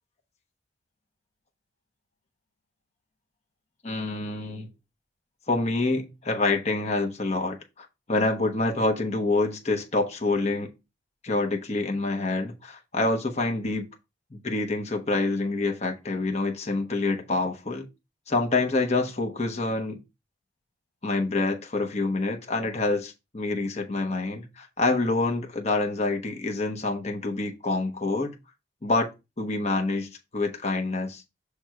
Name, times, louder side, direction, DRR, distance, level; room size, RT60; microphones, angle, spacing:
voice 1, 3.8-4.7 5.5-10.7 11.2-13.8 14.3-17.9 18.3-20.0 21.0-28.4 28.8-29.1 29.4-31.2, left 2 dB, 35° left, 1.1 m, -27 dB
6.3 x 3.4 x 4.6 m
head